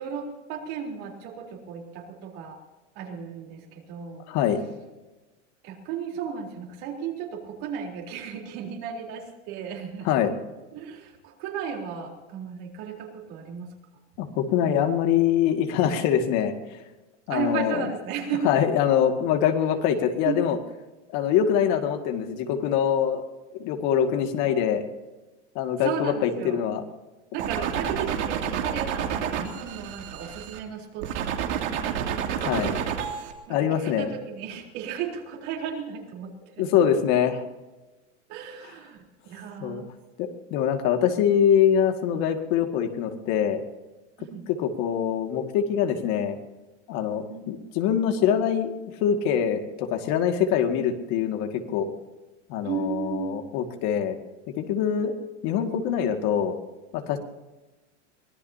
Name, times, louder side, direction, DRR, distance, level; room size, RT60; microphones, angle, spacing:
voice 1, 0.0-2.6 3.0-4.2 5.6-10.1 10.7-13.7 17.3-18.6 19.2-19.3 20.2-20.4 25.8-26.6 27.3-32.2 33.5-36.7 38.3-39.0 39.2-39.9 44.2-44.5 47.3-47.4 52.6-53.4, right 7 dB, 55° right, 0 dB, 4.0 m, -34 dB
voice 2, 4.3-4.6 10.1-10.3 14.2-16.5 17.3-17.9 18.4-20.6 21.1-23.2 23.5-24.8 25.6-26.8 32.4-32.8 33.5-34.1 36.6-37.4 39.6-39.8 40.2-43.6 44.6-46.4 46.9-48.7 49.0-51.9 52.5-54.2 54.6-55.1 55.4-56.6 56.9-57.2, left 9 dB, 50° left, 5 dB, 2.2 m, -24 dB
sound 1, 27.4-30.6 31.0-33.3, right 8 dB, 75° right, 2.9 m, -29 dB
24.0 x 17.5 x 2.9 m, 1.1 s
supercardioid pair, 140°, 35 cm